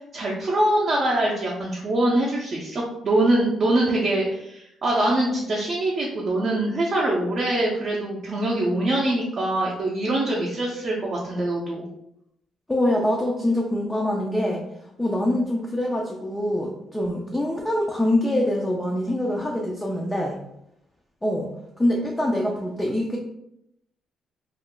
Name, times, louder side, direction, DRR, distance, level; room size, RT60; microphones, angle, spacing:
voice 1, 0.1-11.8, right 1 dB, 40° right, -4 dB, 0.5 m, -23 dB
voice 2, 12.7-14.6 15.0-20.4 21.2-21.5 21.8-23.2, left 1 dB, 10° left, -1 dB, 0.3 m, -24 dB
2.4 x 2.3 x 3.6 m, 0.79 s
cardioid pair, 150°, 0 cm